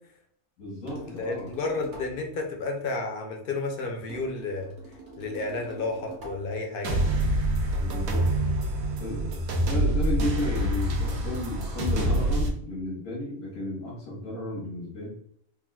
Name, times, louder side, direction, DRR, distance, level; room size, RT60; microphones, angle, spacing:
voice 1, 0.6-1.5 7.8-8.3 9.0-15.1, left 1 dB, 85° left, -7 dB, 1.4 m, -33 dB
sound 1, 0.9-2.2 4.1-6.5, right 2 dB, 40° right, 1.0 m, -44 dB
voice 2, 1.2-4.7 5.2-7.0, left 3 dB, 60° left, 2 dB, 0.6 m, -31 dB
sound 2, 6.8-12.5, right 1 dB, 85° right, 1.1 m, -26 dB
3.5 x 2.3 x 2.2 m, 0.70 s
omnidirectional pair, 1.4 m